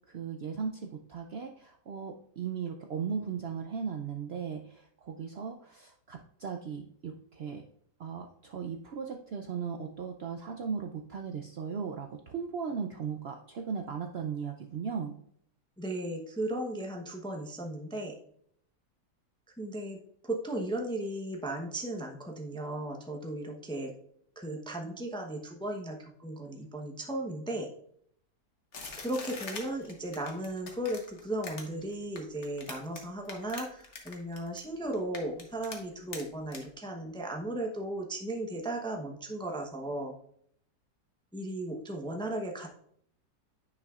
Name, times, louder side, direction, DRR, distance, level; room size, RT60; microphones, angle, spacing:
voice 1, 0.1-7.6 8.0-15.2, right 6 dB, 90° right, 4 dB, 0.5 m, -37 dB
voice 2, 15.8-18.1 19.6-23.9 24.4-27.7 29.0-40.1 41.3-42.7, right 1 dB, 5° left, 2 dB, 0.4 m, -36 dB
sound 1, 28.7-33.0 33.2-34.6 34.9-35.8 36.1-36.2 36.5-36.6, left 4 dB, 45° left, 1.3 m, -42 dB
9.5 x 5.5 x 2.4 m, 0.66 s
omnidirectional pair, 1.8 m